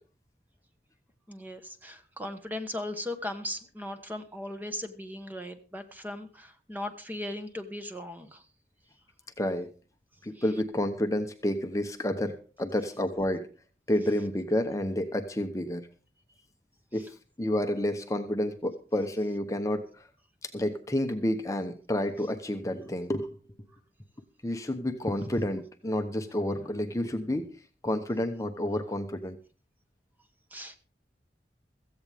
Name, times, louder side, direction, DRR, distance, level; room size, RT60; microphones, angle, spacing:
voice 1, 1.3-8.4 10.3-10.4 30.5-30.8, left 1 dB, 10° right, 7 dB, 1.3 m, -38 dB
voice 2, 9.4-9.7 10.2-13.5 13.9-15.9 16.9-17.1 17.4-20.1 20.4-23.4 24.4-27.5 27.8-29.4, left 1 dB, 20° left, 6 dB, 0.9 m, -30 dB
16.0 x 15.0 x 3.5 m, 0.39 s
head